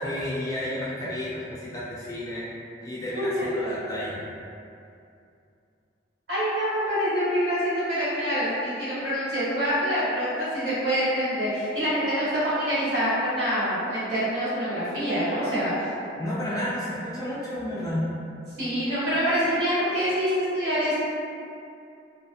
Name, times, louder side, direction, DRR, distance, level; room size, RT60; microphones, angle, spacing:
voice 1, 0.0-2.5 2.8-4.2 16.2-18.0, left 1 dB, 20° left, -8 dB, 0.3 m, -31 dB
voice 2, 3.1-3.5 6.3-15.7 18.6-20.9, equal, 60° right, -11 dB, 1.1 m, -26 dB
2.4 x 2.2 x 2.6 m, 2.5 s
head